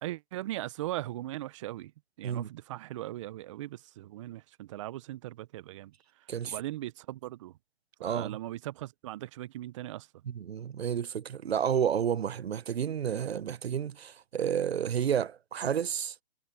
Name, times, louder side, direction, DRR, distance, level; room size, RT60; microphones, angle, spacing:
voice 1, 0.0-1.9 2.2-5.9 6.5-7.5 8.0-10.1, right 15 dB, 30° right, 0.6 m, -39 dB
voice 2, 8.0-8.4 10.3-16.1, right 8 dB, 85° right, 0.8 m, -31 dB
hypercardioid pair, 145°, 30 cm